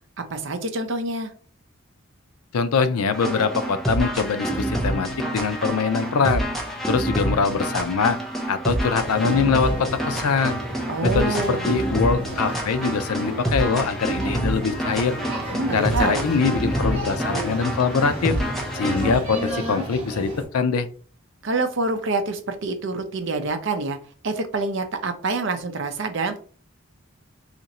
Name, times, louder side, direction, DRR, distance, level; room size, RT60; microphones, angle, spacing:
voice 1, 0.3-1.3 10.9-11.7 15.5-16.2 21.4-24.0 24.2-26.4, right 3 dB, 55° right, 7 dB, 0.6 m, -26 dB
voice 2, 2.5-6.4 6.9-8.2 8.5-10.6 11.0-15.2 15.7-18.4 18.7-20.9, left 5 dB, 90° left, 12 dB, 0.4 m, -23 dB
sound 1, 3.1-19.2, right 1 dB, ahead, 0.6 m, -27 dB
sound 2, 9.0-20.4, equal, 25° right, 1.3 m, -33 dB
2.9 x 2.5 x 4.1 m, 0.42 s
head